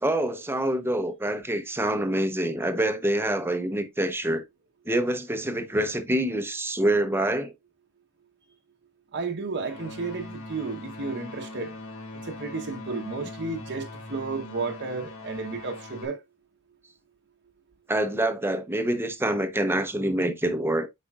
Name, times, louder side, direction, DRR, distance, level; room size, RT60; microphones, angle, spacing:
voice 1, 0.0-4.4 4.9-7.5 17.9-20.9, right 1 dB, 10° right, 0.7 m, -26 dB
voice 2, 9.1-11.8 12.2-16.2, right 4 dB, 50° right, 0.9 m, -32 dB
sound 1, 9.6-16.1, left 2 dB, 65° left, 1.5 m, -41 dB
8.4 x 5.0 x 2.3 m
head